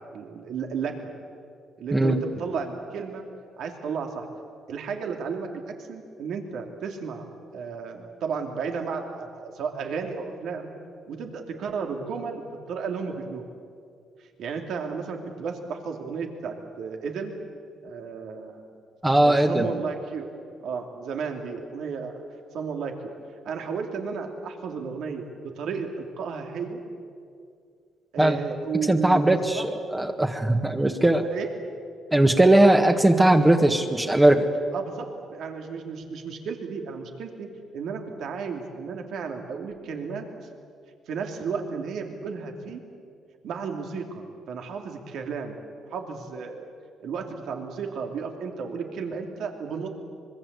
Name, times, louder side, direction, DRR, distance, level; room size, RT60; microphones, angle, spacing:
voice 1, 0.1-1.1 1.8-3.2 3.6-4.2 4.7-5.5 5.8-7.2 7.5-10.7 11.1-13.4 14.2-17.3 17.8-18.7 19.2-20.3 20.6-22.1 22.5-23.1 23.4-25.3 25.6-26.8 28.1-29.6 31.3-31.5 34.7-37.5 37.7-40.2 41.1-42.8 43.4-45.5 45.9-46.7 47.0-49.9, right 5 dB, 75° right, 3 dB, 2.8 m, -33 dB
voice 2, 19.0-19.7 28.2-28.4 28.9-31.2 32.1-34.5, right 1 dB, 15° right, 4 dB, 1.6 m, -19 dB
25.0 x 22.0 x 8.2 m, 2.3 s
cardioid pair, 90°, 0 cm